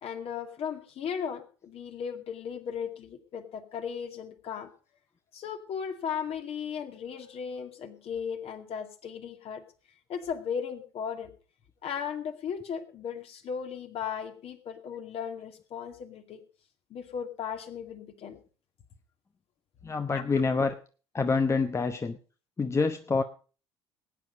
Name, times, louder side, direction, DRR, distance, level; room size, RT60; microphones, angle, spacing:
voice 1, 0.0-4.7 5.3-9.6 10.1-11.3 11.8-16.4 16.9-18.4 20.1-20.2, left 7 dB, 45° left, 6 dB, 2.2 m, -36 dB
voice 2, 19.8-20.8 21.1-22.2 22.6-23.2, left 4 dB, 20° left, 8 dB, 1.0 m, -26 dB
19.0 x 9.6 x 5.2 m, 0.38 s
figure-of-eight pair, 60°, 14 cm